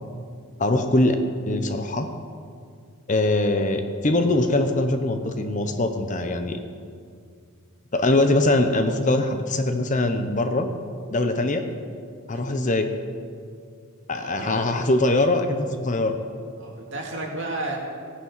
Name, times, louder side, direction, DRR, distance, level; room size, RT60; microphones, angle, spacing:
voice 1, 0.6-1.2 1.5-2.1 3.1-6.6 7.9-10.7 11.1-11.6 12.3-12.9 14.1-16.2, left 2 dB, 35° left, 7 dB, 0.8 m, -22 dB
voice 2, 14.1-14.7 16.6-17.8, right 2 dB, 55° right, -1 dB, 2.4 m, -33 dB
17.0 x 9.4 x 5.7 m, 2.2 s
head